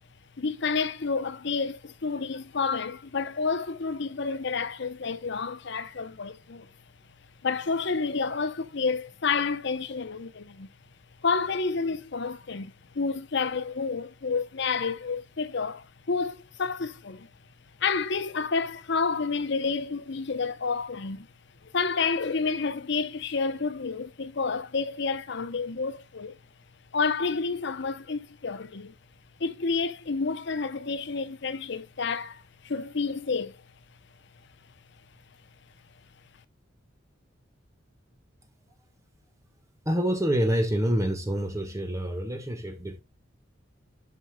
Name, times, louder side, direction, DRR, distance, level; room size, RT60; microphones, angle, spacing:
voice 1, 0.4-6.7 7.4-10.7 11.2-17.3 17.8-21.3 21.7-26.4 26.9-28.9 29.4-33.6, left 4 dB, 65° left, 0.8 m, -29 dB
voice 2, 39.8-43.0, equal, 15° right, 1.3 m, -27 dB
11.0 x 6.6 x 2.3 m
head